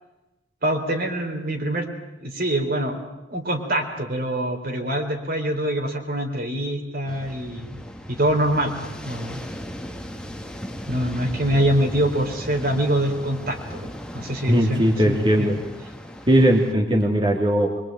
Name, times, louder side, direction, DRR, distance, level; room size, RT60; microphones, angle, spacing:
voice 1, 0.6-1.9 2.2-3.0 3.3-7.7 8.1-9.4 10.9-13.9 14.1-14.8 15.0-15.5, right 1 dB, 50° right, 3 dB, 4.1 m, -24 dB
sound 1, 7.1-16.7, equal, 5° left, 1.7 m, -37 dB
voice 2, 14.5-15.6 16.3-17.7, right 1 dB, 25° right, -1 dB, 2.9 m, -19 dB
25.0 x 23.0 x 9.1 m, 0.99 s
head